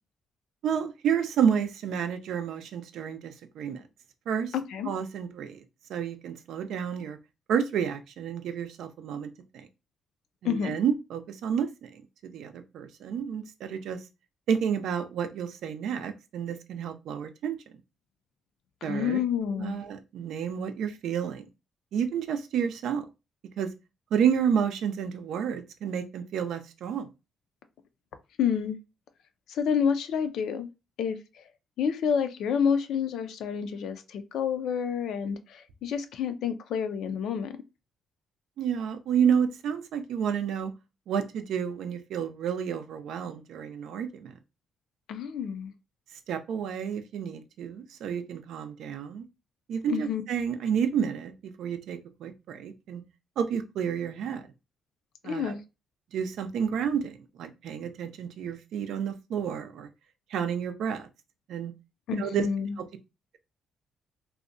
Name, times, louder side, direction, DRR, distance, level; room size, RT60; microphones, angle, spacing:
voice 1, 0.6-3.8 4.3-4.5 4.8-5.6 5.9-7.2 7.5-9.7 10.4-14.0 14.5-17.6 18.8-19.2 19.6-21.5 21.9-23.0 23.6-23.7 24.1-27.1 38.6-40.7 41.1-44.4 46.3-49.3 49.7-53.0 53.4-54.5 55.2-55.6 56.1-59.9 60.3-61.1 61.5-61.7 62.2-62.5 62.8-62.9, right 7 dB, 75° right, 8 dB, 0.4 m, -30 dB
voice 2, 4.5-4.9 10.4-10.7 18.9-19.8 28.4-28.8 29.5-30.7 31.0-31.2 31.8-37.5 45.1-45.7 49.9-50.2 55.2-55.6 62.1-62.7, left 7 dB, 75° left, 9 dB, 0.3 m, -29 dB
2.6 x 2.1 x 2.5 m, 0.26 s
cardioid pair, 90°, 0 cm